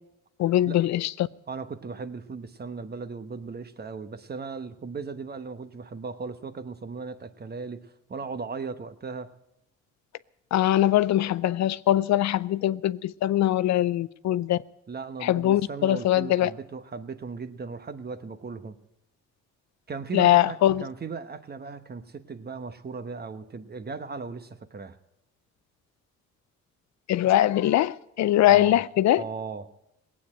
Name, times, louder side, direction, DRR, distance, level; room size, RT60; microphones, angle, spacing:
voice 1, 0.4-1.1 10.5-14.6 15.2-16.5 20.1-20.9 27.1-29.2, left 13 dB, 65° left, 0.5 m, -22 dB
voice 2, 1.5-9.3 14.9-18.8 19.9-25.0 28.5-28.8 29.2-29.7, right 4 dB, 30° right, 1.1 m, -37 dB
18.0 x 8.7 x 8.8 m
cardioid pair, 90°, 30 cm